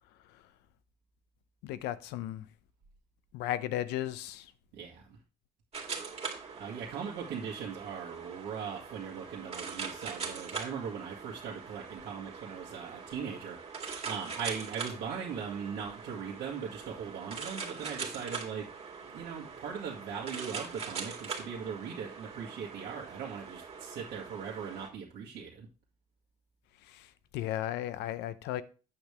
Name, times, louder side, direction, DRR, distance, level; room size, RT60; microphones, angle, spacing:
voice 1, 1.6-2.4 3.3-4.4 27.3-28.6, left 13 dB, 90° left, 0.7 m, -34 dB
voice 2, 4.7-5.2 6.4-18.7 19.0-25.7, right 7 dB, 80° right, 1.9 m, -40 dB
sound 1, 5.7-24.9, right 5 dB, 35° right, 2.2 m, -42 dB
8.5 x 6.7 x 3.6 m
cardioid pair, 110°, 17 cm